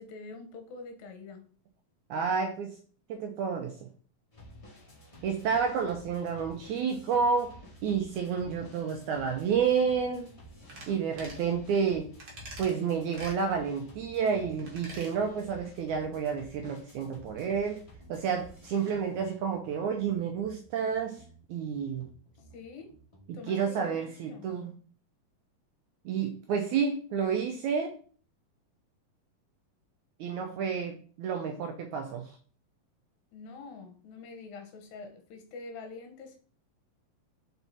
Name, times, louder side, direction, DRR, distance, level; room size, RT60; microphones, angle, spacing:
voice 1, 0.0-1.4 22.5-22.9 23.3-24.0 24.2-24.5 33.3-36.4, left 4 dB, 80° left, 6 dB, 2.8 m, -45 dB
voice 2, 2.1-2.7 3.1-3.9 5.2-10.3 10.9-12.1 12.6-17.8 18.1-21.2 21.5-22.1 23.5-24.8 26.1-27.9 30.2-32.4, right 6 dB, 75° right, 4 dB, 1.8 m, -30 dB
sound 1, 4.3-23.2, equal, 35° left, 0.5 m, -52 dB
sound 2, 10.7-10.9 11.2-11.4 12.2-12.7 13.1-13.4 14.6-15.1 15.5-15.6, right 1 dB, 45° right, 1.6 m, -45 dB
5.9 x 4.5 x 4.1 m, 0.42 s
omnidirectional pair, 4.1 m